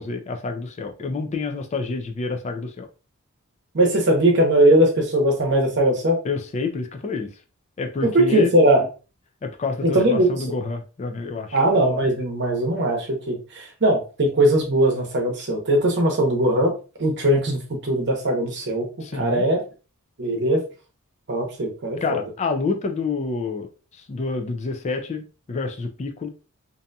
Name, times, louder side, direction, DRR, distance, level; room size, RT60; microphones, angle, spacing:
voice 1, 0.0-2.9 6.2-7.3 7.8-8.5 9.4-11.6 19.0-19.4 22.0-26.3, left 4 dB, 30° left, 0.3 m, -28 dB
voice 2, 3.7-6.2 8.0-8.9 9.8-10.3 11.5-16.7 17.0-18.9 19.1-19.6 20.2-20.6 21.3-22.2, right 1 dB, 50° right, 0.8 m, -20 dB
2.6 x 2.6 x 2.2 m
head